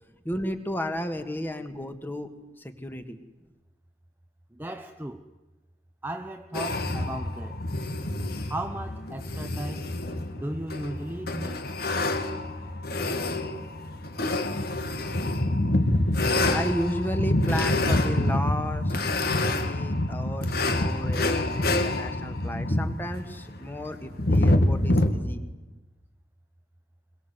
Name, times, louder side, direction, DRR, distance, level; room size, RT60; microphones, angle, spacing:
voice 1, 0.2-2.3 2.6-3.2 16.5-19.0 19.4-25.4, equal, 10° left, 1.7 m, -33 dB
voice 2, 4.5-5.3 6.0-7.6 8.5-10.0 10.3-11.7, right 1 dB, 10° right, 0.8 m, -36 dB
sound 1, 6.5-25.1, left 1 dB, 55° left, 1.8 m, -27 dB
22.5 x 22.0 x 8.0 m
head